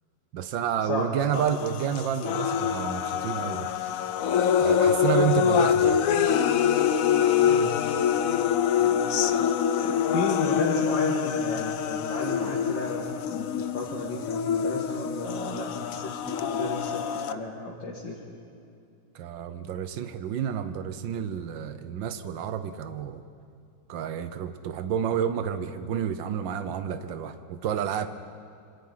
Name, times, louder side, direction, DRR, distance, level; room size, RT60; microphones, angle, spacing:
voice 1, 0.3-3.7 4.6-6.0 19.1-23.2 23.9-28.1, right 8 dB, 85° right, 11 dB, 1.6 m, -30 dB
voice 2, 0.9-1.5 7.4-7.7 10.1-13.5 13.7-17.0 17.3-18.2, left 2 dB, 80° left, -3 dB, 3.0 m, -32 dB
sound 1, 1.3-17.3, left 8 dB, 60° left, 1.0 m, -25 dB
26.5 x 25.5 x 5.7 m, 2.5 s
omnidirectional pair, 2.0 m